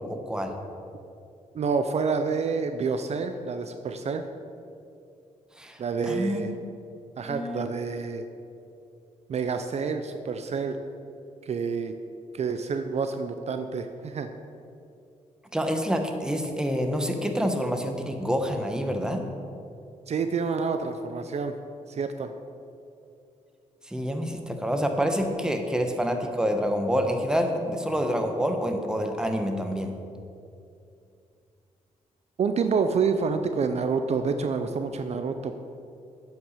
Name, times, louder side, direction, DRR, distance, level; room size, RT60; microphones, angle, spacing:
voice 1, 0.1-0.5 5.6-6.4 7.3-7.6 15.5-19.2 23.8-29.9, equal, 5° right, 4 dB, 1.1 m, -27 dB
voice 2, 1.5-4.2 5.8-6.5 7.2-8.2 9.3-10.8 11.4-11.9 12.3-14.3 20.1-21.5 21.9-22.3 32.4-35.6, right 5 dB, 55° right, 8 dB, 0.5 m, -28 dB
9.1 x 5.9 x 6.6 m, 2.6 s
cardioid pair, 85°, 13 cm